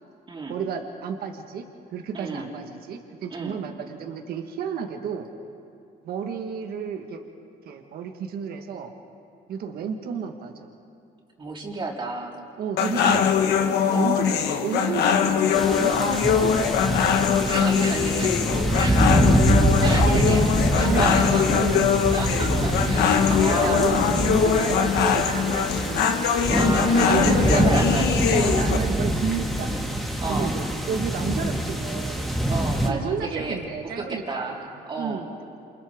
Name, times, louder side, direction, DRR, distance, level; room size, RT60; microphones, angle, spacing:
voice 1, 0.5-1.6 1.9-5.3 6.0-7.2 7.6-8.9 9.5-10.5 12.6-13.5 13.9-16.8 17.8-18.4 19.1-19.4 19.8-20.5 20.8-21.2 21.5-21.9 23.3-26.6 26.9-27.6 28.3-32.4 32.8-35.4, right 6 dB, 65° right, 4 dB, 1.6 m, -32 dB
voice 2, 2.1-2.5 3.3-3.6 11.4-12.4 13.9-14.2 17.2-18.3 18.7-19.4 19.8-20.4 20.7-21.7 22.1-23.9 26.5-28.7 30.2-30.6 32.5-33.6 33.8-34.6 34.9-35.2, right 3 dB, 30° right, -2 dB, 3.8 m, -31 dB
sound 1, 12.8-28.8, left 7 dB, 75° left, 1.6 m, -22 dB
sound 2, 15.5-32.9, right 1 dB, ahead, 2.2 m, -24 dB
28.5 x 27.5 x 3.7 m, 2.5 s
cardioid pair, 110°, 17 cm